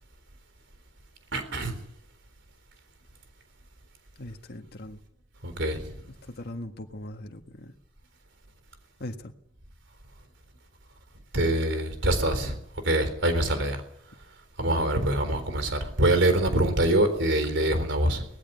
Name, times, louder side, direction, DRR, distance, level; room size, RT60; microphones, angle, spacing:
voice 1, 1.3-1.8 5.4-6.0 11.3-12.6 12.8-13.8 14.6-18.3, right 1 dB, 65° right, 3.9 m, -24 dB
voice 2, 4.2-5.0 6.2-7.7 9.0-9.3, left 1 dB, 55° left, 1.7 m, -40 dB
19.0 x 15.0 x 9.5 m
head